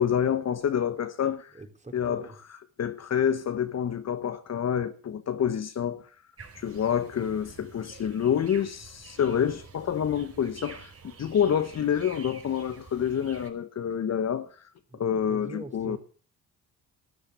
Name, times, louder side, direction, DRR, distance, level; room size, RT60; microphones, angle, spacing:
voice 1, 0.0-1.5 1.9-2.2 2.8-6.1 6.5-10.9 11.2-14.5 14.9-16.0, left 8 dB, 45° left, 1.2 m, -27 dB
voice 2, 1.5-2.4 14.9-16.0, right 2 dB, 20° right, 3.9 m, -43 dB
sound 1, 6.4-13.5, right 5 dB, 40° right, 4.4 m, -49 dB
13.0 x 10.0 x 8.1 m
supercardioid pair, 65°, 36 cm